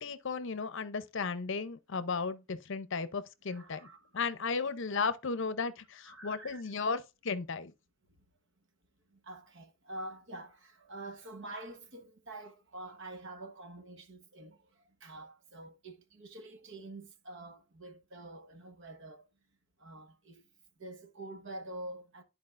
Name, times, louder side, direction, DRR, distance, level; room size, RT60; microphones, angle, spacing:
voice 1, 0.0-3.9 4.1-7.7, left 4 dB, 60° left, 0.6 m, -35 dB
voice 2, 3.5-4.4 6.0-6.6 8.1-8.2 9.1-19.3 19.8-20.4 20.8-22.2, right 1 dB, 60° right, 1.2 m, -47 dB
13.0 x 4.6 x 2.5 m
head